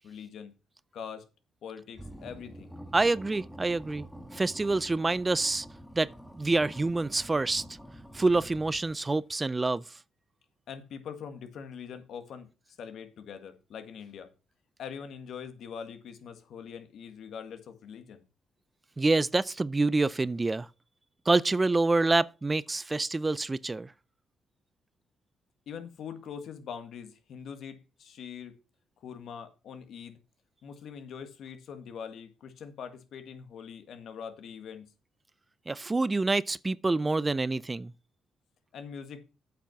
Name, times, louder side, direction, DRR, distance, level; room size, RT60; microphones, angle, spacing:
voice 1, 0.0-0.5 0.9-1.2 1.6-2.7 10.7-12.5 12.8-14.3 14.8-18.2 25.7-28.6 29.0-30.2 30.6-34.9 38.7-39.2, left 7 dB, 70° left, 1.7 m, -43 dB
sound 1, 1.9-9.2, equal, ahead, 1.4 m, -47 dB
voice 2, 2.9-4.0 4.3-5.7 6.0-7.6 8.1-9.8 19.0-20.7 21.3-23.9 35.7-37.9, right 3 dB, 25° right, 0.4 m, -27 dB
8.5 x 5.9 x 5.7 m
cardioid pair, 75°, 0 cm